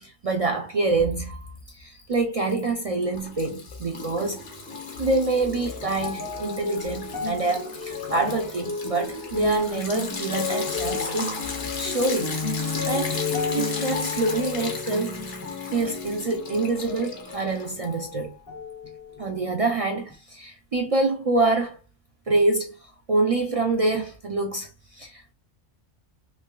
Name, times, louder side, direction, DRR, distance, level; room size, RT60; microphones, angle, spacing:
voice 1, 0.0-15.2 15.7-18.3 19.2-21.8 22.3-25.3, right 3 dB, 60° right, 0.3 m, -26 dB
Liquid, 1.1-1.7 2.0-18.2, left 4 dB, 80° left, 1.3 m, -37 dB
sound 1, 4.7-18.1 18.5-19.4 20.1-20.2, left 5 dB, 35° left, 0.3 m, -33 dB
3.3 x 3.1 x 2.3 m
omnidirectional pair, 1.2 m